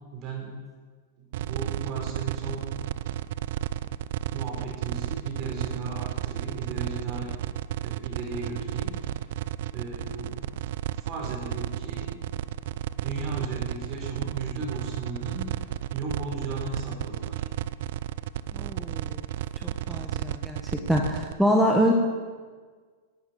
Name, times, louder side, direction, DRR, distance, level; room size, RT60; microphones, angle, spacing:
voice 1, 0.1-0.5 1.2-2.7 4.3-7.3 7.8-9.2 9.7-10.5 11.0-12.1 13.0-17.5, right 3 dB, 35° right, 0 dB, 4.6 m, -36 dB
sound 1, 1.3-21.3, right 12 dB, 65° right, 0.5 m, -32 dB
voice 2, 18.5-19.2 19.5-21.9, equal, ahead, 0 dB, 1.2 m, -25 dB
11.5 x 8.7 x 9.4 m, 1.5 s
hypercardioid pair, 135°, 0 cm